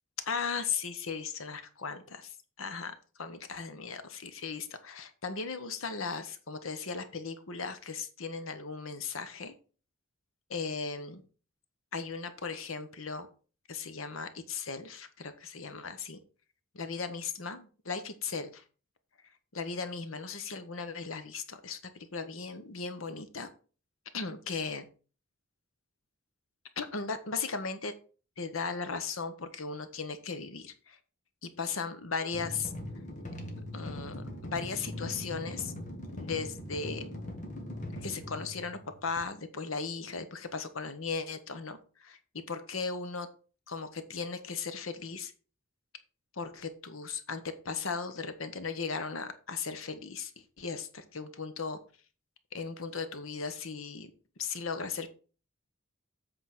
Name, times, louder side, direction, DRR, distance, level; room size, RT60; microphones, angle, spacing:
voice 1, 0.3-9.5 10.5-11.2 11.9-13.3 13.7-16.2 16.7-18.6 19.5-21.8 22.1-23.5 24.1-24.8 26.8-27.9 28.4-31.0 31.4-32.7 33.7-35.7 36.1-37.0 38.0-42.2 42.5-43.3 43.7-45.3 46.3-50.3 50.6-51.8 52.5-54.1 54.4-55.1, left 5 dB, 85° left, 10 dB, 1.1 m, -37 dB
sound 1, 32.3-39.2, left 1 dB, 35° left, 1.5 m, -41 dB
7.8 x 4.0 x 5.9 m, 0.38 s
head